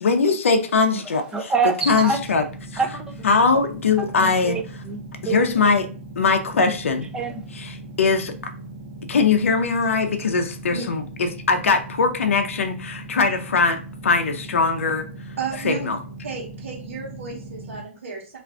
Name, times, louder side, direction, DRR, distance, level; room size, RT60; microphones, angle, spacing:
voice 1, 0.0-1.5 1.9-2.4 3.2-4.6 5.2-5.9 6.2-7.1 7.5-8.5 9.1-15.1 15.6-16.0, left 4 dB, 80° left, 0.5 m, -21 dB
voice 2, 1.3-2.2 2.8-3.2 4.1-5.4 7.1-7.4, right 4 dB, 10° right, 0.5 m, -26 dB
sound 1, 1.8-17.8, right 2 dB, 55° right, 0.6 m, -39 dB
voice 3, 15.4-15.9 16.2-18.4, right 5 dB, 80° right, 1.0 m, -32 dB
2.5 x 2.3 x 3.3 m
hypercardioid pair, 125°, 7 cm